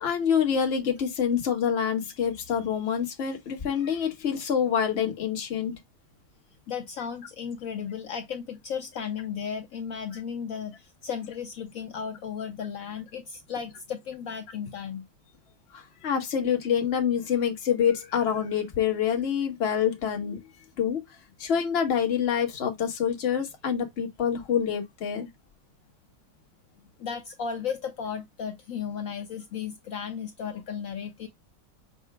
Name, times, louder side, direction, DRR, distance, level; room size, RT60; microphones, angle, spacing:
voice 1, 0.0-5.7 15.7-20.4 20.8-21.0 21.4-25.3, left 8 dB, 40° left, 1.2 m, -26 dB
voice 2, 6.7-15.0 27.0-31.3, left 7 dB, 65° left, 0.8 m, -35 dB
5.8 x 2.0 x 4.5 m
omnidirectional pair, 1.9 m